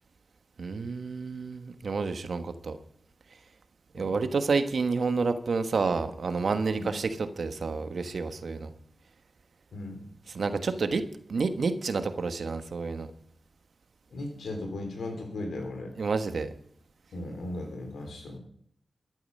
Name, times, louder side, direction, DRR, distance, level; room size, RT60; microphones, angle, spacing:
voice 1, 0.6-2.8 3.9-8.7 10.3-11.0 11.3-13.1 16.0-16.5, right 4 dB, 75° right, 9 dB, 1.3 m, -29 dB
voice 2, 9.7-10.0 14.1-15.9 17.1-18.4, left 2 dB, 90° left, 4 dB, 3.6 m, -37 dB
13.5 x 11.0 x 5.5 m, 0.67 s
cardioid pair, 50°, 0 cm